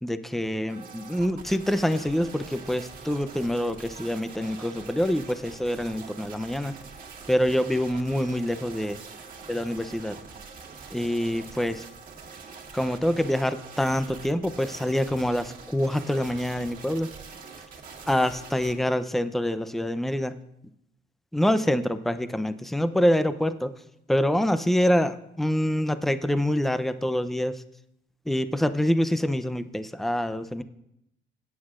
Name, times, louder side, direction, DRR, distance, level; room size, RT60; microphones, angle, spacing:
voice 1, 0.0-6.7 7.3-9.0 9.5-10.2 10.9-11.8 12.7-17.1 18.1-20.4 21.3-23.7 24.1-27.6 28.3-30.6, equal, ahead, 12 dB, 0.5 m, -26 dB
sound 1, 0.7-18.8, right 5 dB, 45° right, 1.8 m, -44 dB
16.0 x 9.5 x 2.5 m, 0.79 s
cardioid pair, 90°, 20 cm